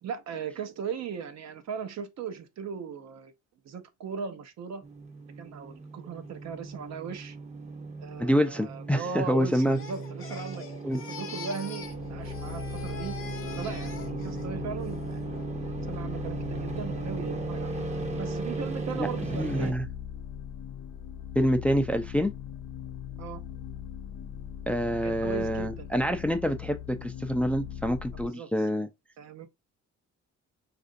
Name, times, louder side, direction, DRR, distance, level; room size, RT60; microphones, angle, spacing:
voice 1, 0.0-3.3 3.6-4.8 5.4-7.4 8.0-10.7 11.1-13.2 13.6-15.5 15.9-17.8 18.2-19.8 23.2-23.4 25.0-25.9 28.1-28.5 29.2-29.5, right 6 dB, 60° right, 0.7 m, -38 dB
sound 1, 4.8-19.7, right 4 dB, 20° right, 0.7 m, -37 dB
voice 2, 8.2-9.8 10.8-11.0 18.9-19.1 19.3-19.8 21.4-22.3 24.7-28.9, equal, 5° left, 0.4 m, -27 dB
Crying sobbing, 9.5-12.0 12.2-14.4 14.8-15.2, left 7 dB, 45° left, 0.9 m, -44 dB
sound 2, 11.8-28.3, left 10 dB, 70° left, 0.5 m, -40 dB
4.1 x 2.6 x 2.6 m
cardioid pair, 90°, 30 cm